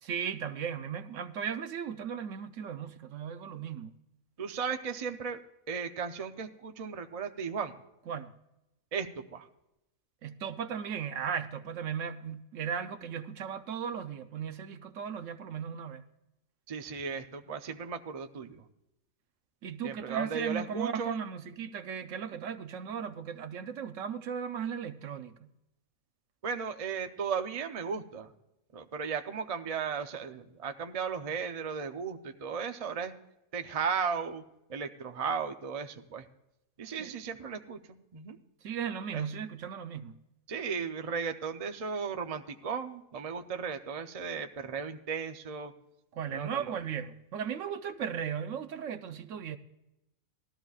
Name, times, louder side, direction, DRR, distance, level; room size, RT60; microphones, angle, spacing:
voice 1, 0.0-3.9 8.1-8.3 10.2-16.0 19.6-25.5 37.0-37.1 38.6-40.2 46.1-49.6, right 7 dB, 70° right, 0.9 m, -36 dB
voice 2, 4.4-5.4 5.7-7.8 8.9-9.5 16.7-18.6 19.8-21.2 26.4-28.3 28.7-33.1 33.5-34.4 34.7-36.3 36.8-37.8 38.1-38.4 39.1-39.3 40.5-45.7 46.3-46.7, right 6 dB, 50° right, 0.4 m, -35 dB
18.0 x 13.0 x 2.4 m
omnidirectional pair, 1.4 m